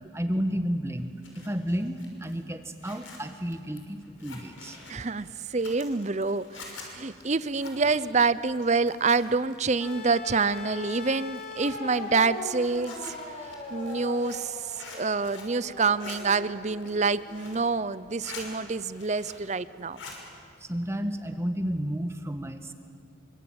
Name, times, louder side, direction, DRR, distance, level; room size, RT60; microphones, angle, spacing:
voice 1, 0.1-1.1 1.3-4.8 20.6-22.7, equal, 15° right, 7 dB, 1.4 m, -31 dB
Zipper (clothing), 1.0-9.5 9.8-10.8 11.3-15.6 15.8-16.2 16.7-17.7 18.0-18.5 18.8-19.5 19.8-20.2, left 4 dB, 80° left, 6.0 m, -47 dB
voice 2, 4.9-13.1 13.7-14.6 14.9-20.0, right 4 dB, 35° right, 15 dB, 0.7 m, -27 dB
sound 1, 9.8-17.9 19.1-19.2, left 2 dB, 35° left, 5.6 m, -40 dB
27.0 x 24.5 x 8.9 m, 2.3 s
head